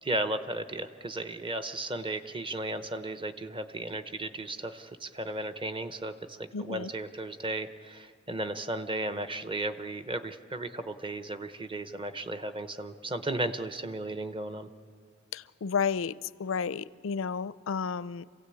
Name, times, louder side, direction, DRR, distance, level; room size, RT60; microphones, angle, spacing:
voice 1, 0.0-14.7, right 2 dB, 25° right, 10 dB, 0.8 m, -35 dB
voice 2, 6.5-6.9 15.3-18.3, left 6 dB, 85° left, 18 dB, 0.5 m, -32 dB
27.0 x 16.5 x 8.5 m, 2.3 s
head